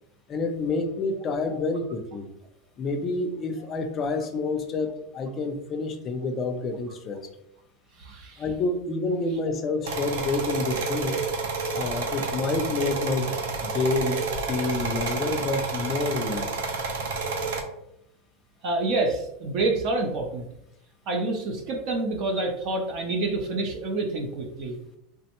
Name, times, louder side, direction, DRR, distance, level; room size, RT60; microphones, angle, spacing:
voice 1, 0.3-2.3 2.8-7.3 8.4-11.2 11.7-13.3 13.6-16.5, left 3 dB, 25° left, 6 dB, 0.4 m, -28 dB
voice 2, 8.0-8.4 14.3-14.4 18.6-20.4 21.1-24.8, right 2 dB, 40° right, 2 dB, 0.5 m, -28 dB
sound 1, 9.8-17.6, right 4 dB, 85° right, 0.6 m, -30 dB
3.4 x 2.0 x 2.8 m, 0.80 s
supercardioid pair, 165°, 0 cm